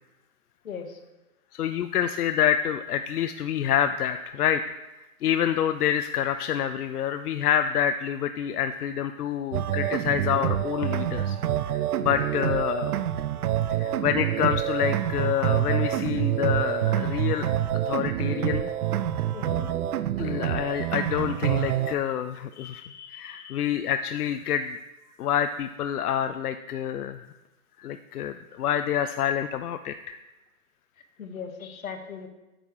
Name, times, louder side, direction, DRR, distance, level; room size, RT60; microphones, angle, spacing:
voice 1, 0.6-1.0 19.3-19.7 31.2-32.3, left 6 dB, 65° left, 7 dB, 1.3 m, -38 dB
voice 2, 1.5-4.6 5.2-11.4 11.7-12.9 13.7-17.5 17.9-18.7 20.2-24.8 25.2-27.3 27.8-30.2, left 9 dB, 90° left, 9 dB, 0.6 m, -27 dB
sound 1, 9.5-21.9, right 11 dB, 80° right, 0.6 m, -27 dB
8.7 x 5.5 x 4.8 m, 1.0 s
hypercardioid pair, 175°, 44 cm